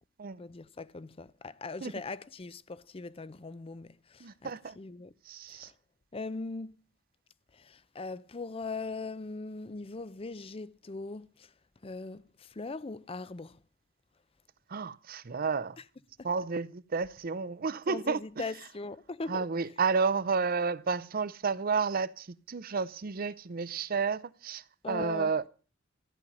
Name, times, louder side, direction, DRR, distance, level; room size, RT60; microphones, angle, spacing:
voice 1, 0.4-5.1 5.5-5.7 6.1-6.8 7.5-11.5 11.8-13.6 15.8-15.9 16.2-16.3 17.9-19.7 24.8-25.4, left 3 dB, 30° left, 0.5 m, -40 dB
voice 2, 4.2-4.7 5.3-5.7 14.7-15.8 16.2-18.2 19.3-25.5, right 5 dB, 45° right, 0.6 m, -31 dB
14.0 x 5.5 x 9.4 m
head